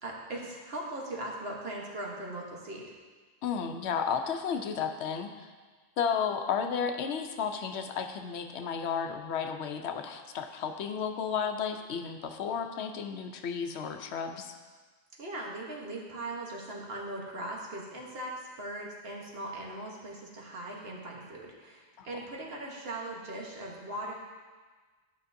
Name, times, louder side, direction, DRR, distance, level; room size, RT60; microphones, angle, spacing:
voice 1, 0.0-2.9 15.2-24.1, right 1 dB, 65° right, -1 dB, 1.3 m, -39 dB
voice 2, 3.4-5.5 6.0-14.5 22.0-22.1, left 7 dB, 80° left, 6 dB, 0.9 m, -33 dB
11.0 x 5.7 x 2.6 m, 1.4 s
omnidirectional pair, 1.1 m